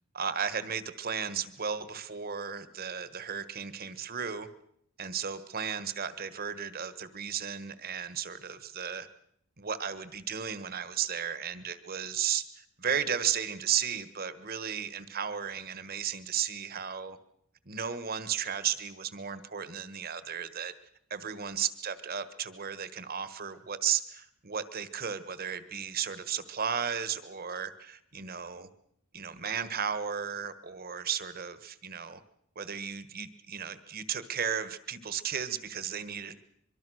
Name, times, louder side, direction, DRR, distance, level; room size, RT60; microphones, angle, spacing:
voice 1, 0.1-4.5 5.0-9.1 9.6-17.2 17.6-20.7 21.1-28.7 29.1-32.2 32.5-36.4, right 7 dB, 45° right, 13 dB, 1.4 m, -34 dB
24.0 x 23.5 x 6.4 m, 0.73 s
head